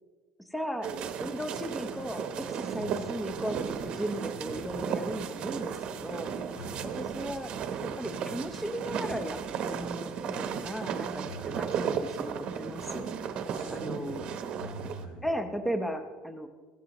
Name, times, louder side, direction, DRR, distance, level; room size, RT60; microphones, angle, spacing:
voice 1, 0.4-0.9 1.2-6.3 6.8-7.5 7.8-13.1 13.7-14.2 15.2-16.5, equal, 5° left, 7 dB, 0.7 m, -36 dB
sound 1, 0.8-15.1, right 7 dB, 45° right, 0.9 m, -35 dB
voice 2, 6.5-6.9 11.2-11.6 13.5-15.3, equal, 90° left, 1 dB, 3.6 m, -43 dB
16.0 x 12.5 x 3.0 m, 1.5 s
cardioid pair, 150°, 2 cm